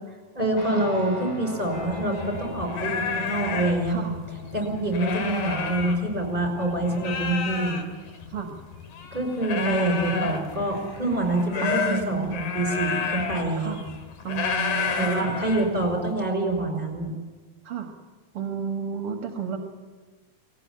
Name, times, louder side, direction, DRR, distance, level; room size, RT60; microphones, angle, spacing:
voice 1, 0.3-4.0 4.5-7.8 9.1-13.8 15.0-17.1, right 1 dB, 15° right, 2 dB, 5.5 m, -26 dB
Guitar, 0.6-9.3, left 3 dB, 60° left, 7.0 m, -42 dB
sound 1, 1.7-6.5 6.8-16.1, left 6 dB, 80° left, 3.4 m, -31 dB
voice 2, 3.9-4.2 8.3-8.5 9.5-10.4 11.6-12.5 13.6-13.8 14.2-15.4 17.6-17.9 18.3-19.6, right 7 dB, 55° right, 4 dB, 2.2 m, -32 dB
19.5 x 18.0 x 8.8 m, 1.3 s
omnidirectional pair, 3.4 m